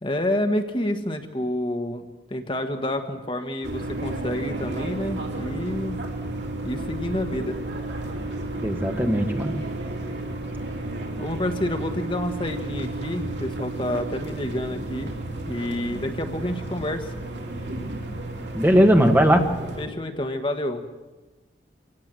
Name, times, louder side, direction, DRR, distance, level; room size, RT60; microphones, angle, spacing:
voice 1, 0.0-6.0 6.6-7.6 11.2-15.1 15.5-17.1 19.8-20.9, left 1 dB, 30° left, 6 dB, 1.3 m, -29 dB
sound 1, 3.6-19.9, right 2 dB, 80° right, 3.6 m, -32 dB
voice 2, 8.6-9.5 18.5-19.4, equal, 10° right, 4 dB, 1.6 m, -18 dB
26.0 x 17.5 x 7.6 m, 1.2 s
head